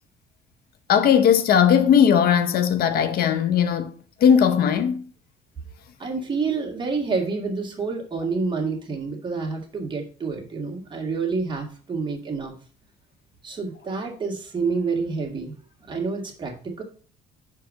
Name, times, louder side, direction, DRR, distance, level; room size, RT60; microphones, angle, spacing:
voice 1, 0.9-3.9 4.2-5.0, left 8 dB, 65° left, 0.7 m, -18 dB
voice 2, 6.0-12.5 13.4-15.5 15.9-16.8, right 4 dB, 30° right, 1.9 m, -28 dB
6.1 x 4.6 x 5.2 m
cardioid pair, 110°, 17 cm